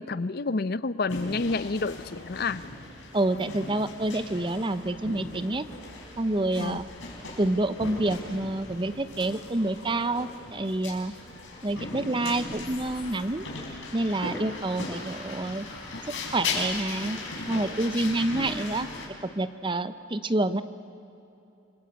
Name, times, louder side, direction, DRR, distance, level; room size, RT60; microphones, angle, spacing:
voice 1, 0.0-2.6 6.6-6.8, left 3 dB, 55° left, 16 dB, 0.6 m, -29 dB
sound 1, 1.1-19.1, left 3 dB, 80° left, 5.3 m, -38 dB
voice 2, 3.1-5.7 6.2-6.9 7.4-11.1 11.6-13.5 13.9-15.7 16.1-17.2 17.5-18.9 19.2-20.6, right 2 dB, 25° right, 12 dB, 0.8 m, -28 dB
27.5 x 22.0 x 8.3 m, 2.8 s
head